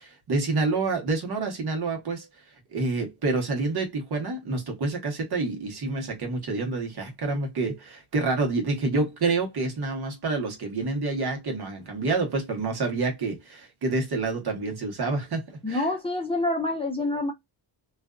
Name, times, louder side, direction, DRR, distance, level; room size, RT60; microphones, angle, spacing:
voice 1, 0.0-2.3 2.7-15.9, right 3 dB, 55° right, 1.1 m, -28 dB
voice 2, 15.6-17.3, left 2 dB, 10° left, 0.7 m, -27 dB
2.5 x 2.4 x 2.2 m
wide cardioid pair, 130°, 47 cm